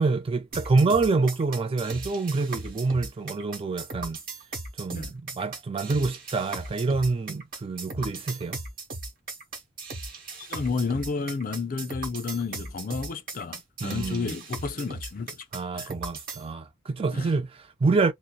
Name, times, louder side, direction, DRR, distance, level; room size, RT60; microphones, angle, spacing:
voice 1, 0.0-4.2 4.8-8.6 13.8-14.4 15.5-18.1, right 3 dB, 30° right, 0.3 m, -26 dB
sound 1, 0.5-16.4, right 2 dB, 45° right, 1.2 m, -37 dB
voice 2, 10.4-15.4 15.7-15.9 17.1-17.3, left 4 dB, 45° left, 0.4 m, -31 dB
2.6 x 2.0 x 2.3 m
head